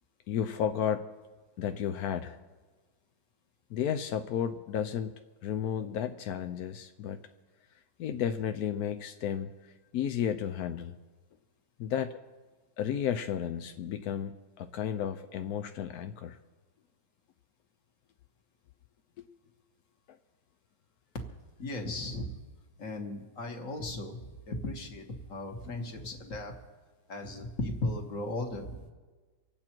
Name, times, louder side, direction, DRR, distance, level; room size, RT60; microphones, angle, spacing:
voice 1, 0.3-1.1 1.6-2.4 3.7-7.2 8.0-11.0 11.8-12.2 12.8-16.4 19.2-19.3, left 9 dB, 70° left, 8 dB, 0.9 m, -33 dB
voice 2, 21.6-22.4 22.8-26.5 27.1-28.9, left 2 dB, 40° left, 3 dB, 1.8 m, -36 dB
26.0 x 8.7 x 4.5 m, 1.3 s
omnidirectional pair, 2.2 m